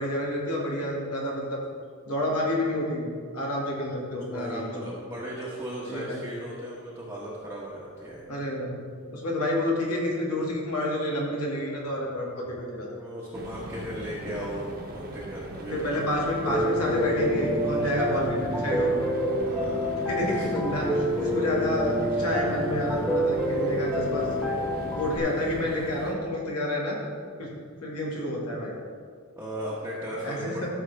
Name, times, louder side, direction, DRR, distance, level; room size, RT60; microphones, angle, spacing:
voice 1, 0.0-1.6 2.1-4.9 5.8-6.3 8.3-8.7 9.1-12.9 14.3-14.4 15.7-19.0 20.1-24.6 24.9-27.0 27.4-27.5 27.8-28.7 30.2-30.7, left 1 dB, 90° left, -2 dB, 2.1 m, -29 dB
voice 2, 4.2-8.2 12.6-12.7 13.0-16.0 19.4-20.5 29.4-30.7, equal, 10° right, -7 dB, 1.2 m, -37 dB
sound 1, 13.3-26.1, right 1 dB, 45° right, 1.3 m, -39 dB
Piano, 16.5-25.2, equal, 5° left, 0.8 m, -27 dB
13.5 x 6.3 x 3.4 m, 2.1 s
head